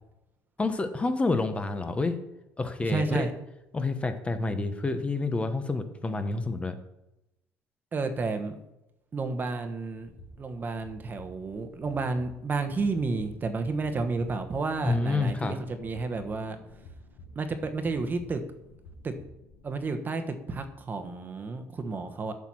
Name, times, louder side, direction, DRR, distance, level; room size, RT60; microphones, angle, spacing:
voice 1, 0.6-2.2 2.6-3.3 3.7-6.8 14.8-15.6, left 3 dB, 20° left, 9 dB, 0.8 m, -28 dB
voice 2, 2.9-3.3 7.9-8.6 9.1-10.1 10.4-16.6 17.4-18.4 19.0-19.1 19.6-22.3, right 3 dB, 30° right, 7 dB, 1.0 m, -31 dB
sound 1, 10.0-19.8, left 2 dB, 85° left, 1.3 m, -51 dB
7.2 x 5.9 x 6.1 m, 0.90 s
cardioid pair, 110°, 6 cm